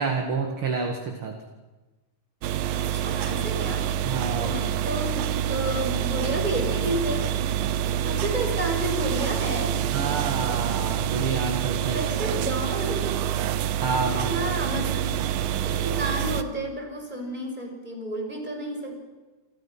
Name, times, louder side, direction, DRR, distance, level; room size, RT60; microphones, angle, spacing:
voice 1, 0.0-1.4 4.1-4.5 9.9-12.0 13.8-14.5, right 4 dB, 45° right, 3 dB, 2.4 m, -29 dB
sound 1, 2.4-16.4, right 10 dB, 80° right, 2.6 m, -27 dB
voice 2, 2.7-3.9 4.3-7.3 8.0-9.8 11.9-13.2 13.9-15.2 15.6-19.0, right 1 dB, 10° right, 2 dB, 5.7 m, -31 dB
29.0 x 26.5 x 5.9 m, 1.2 s
omnidirectional pair, 4.1 m